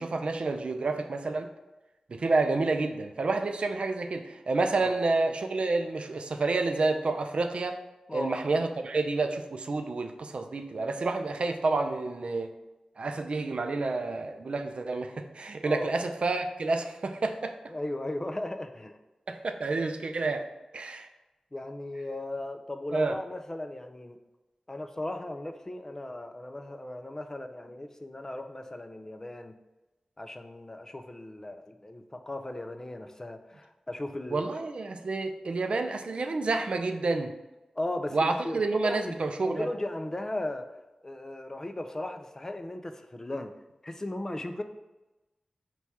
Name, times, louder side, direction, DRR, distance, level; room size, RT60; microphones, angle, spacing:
voice 1, 0.0-1.5 2.1-7.8 8.1-12.5 13.0-17.6 19.3-20.5 20.7-21.1 22.9-23.1 34.3-37.3 38.1-39.7, right 3 dB, 65° right, 6 dB, 0.4 m, -29 dB
voice 2, 17.7-19.0 21.5-24.2 24.7-29.5 30.2-34.5 37.8-39.2 39.5-40.8 41.0-43.5 43.8-44.6, left 1 dB, 25° left, 7 dB, 0.4 m, -37 dB
4.1 x 2.3 x 4.5 m, 1.1 s
cardioid pair, 55°, 2 cm